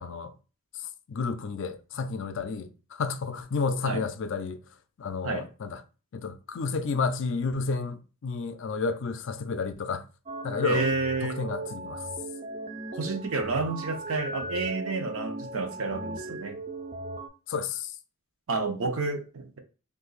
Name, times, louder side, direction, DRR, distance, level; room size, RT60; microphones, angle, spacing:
voice 1, 0.0-0.3 1.1-4.6 5.0-5.8 6.1-10.0 10.4-10.9 11.2-12.1 17.5-17.9, left 4 dB, 60° left, 0.4 m, -31 dB
sound 1, 10.3-17.3, right 1 dB, 30° right, 0.4 m, -37 dB
voice 2, 10.6-11.4 12.9-16.6 18.5-19.6, right 3 dB, 70° right, 0.6 m, -30 dB
2.8 x 2.5 x 3.9 m
head